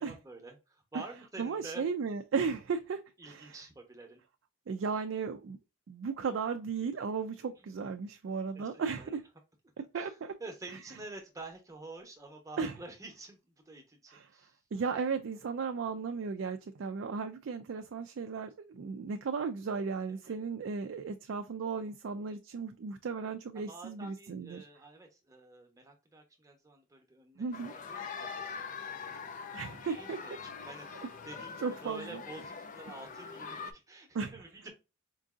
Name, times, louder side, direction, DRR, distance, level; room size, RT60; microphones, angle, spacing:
voice 1, 0.0-1.8 3.2-4.2 7.6-7.7 8.5-9.1 9.8-14.6 20.1-20.4 23.7-27.4 27.7-34.7, right 2 dB, 15° right, 0.8 m, -49 dB
voice 2, 1.4-3.0 3.3-3.5 4.7-5.6 5.9-9.2 9.9-10.3 12.6-12.7 14.1-14.3 14.7-24.7 27.4-27.7 29.5-30.2 31.6-32.2 34.1-34.3, right 5 dB, 60° right, 0.3 m, -35 dB
sound 1, 27.5-33.7, left 5 dB, 40° left, 0.4 m, -43 dB
4.5 x 2.6 x 2.3 m
head